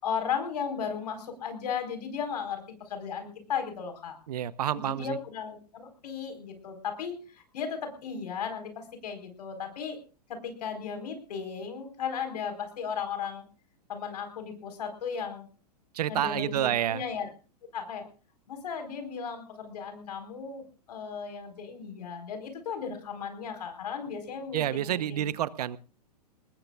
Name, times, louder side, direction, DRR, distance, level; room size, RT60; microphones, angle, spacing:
voice 1, 0.0-4.2 4.7-10.0 10.3-13.4 13.9-15.5 16.1-17.3 17.7-18.0 18.5-25.3, left 6 dB, 75° left, 7 dB, 4.4 m, -36 dB
voice 2, 4.3-5.2 15.9-17.0 24.5-25.8, right 11 dB, 70° right, 18 dB, 0.8 m, -29 dB
22.0 x 19.5 x 2.4 m, 0.36 s
hypercardioid pair, 115°, 21 cm